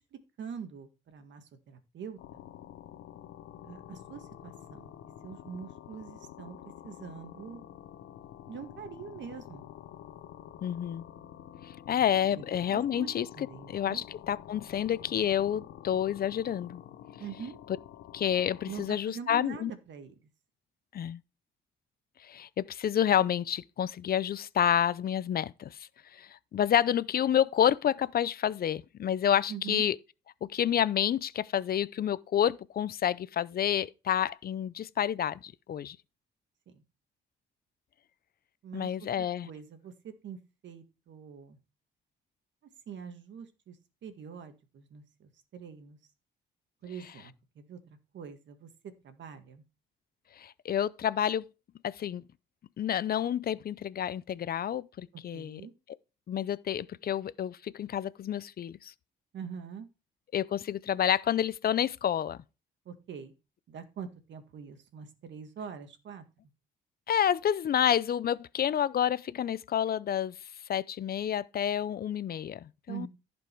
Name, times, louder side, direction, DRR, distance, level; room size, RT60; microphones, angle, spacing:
voice 1, 0.0-2.2 3.6-4.9 5.2-6.6 6.8-7.6 8.5-9.7 11.9-12.0 12.3-12.4 12.7-14.0 17.2-17.6 18.7-20.2 29.5-29.8 36.7-36.8 38.6-41.6 42.9-43.8 44.0-46.0 46.8-49.6 55.3-55.7 59.3-59.9 62.9-63.3 63.7-66.2 72.9-73.1, right 7 dB, 65° right, 1.8 m, -44 dB
sound 1, 2.2-18.9, left 11 dB, 90° left, 1.0 m, -48 dB
voice 2, 10.6-11.0 11.9-16.8 18.1-19.7 20.9-21.2 22.2-25.8 26.1-30.0 30.4-36.0 38.7-39.5 50.4-51.4 51.8-52.2 52.8-55.6 56.3-58.9 60.3-62.4 67.1-70.3 70.7-73.1, left 9 dB, 50° left, 0.5 m, -29 dB
14.5 x 5.3 x 4.6 m
cardioid pair, 90°, 20 cm